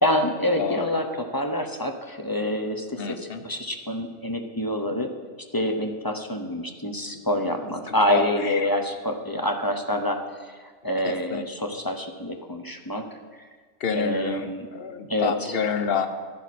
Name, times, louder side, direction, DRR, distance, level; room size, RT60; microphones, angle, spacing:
voice 1, 0.0-5.1 5.5-13.1 13.9-14.7 15.1-15.5, left 1 dB, 20° left, 4 dB, 0.7 m, -27 dB
voice 2, 0.6-0.9 3.0-3.5 7.1-7.2 8.1-8.7 11.0-11.4 13.8-16.1, left 6 dB, 55° left, 9 dB, 1.0 m, -28 dB
11.5 x 10.5 x 4.2 m, 1.5 s
omnidirectional pair, 1.2 m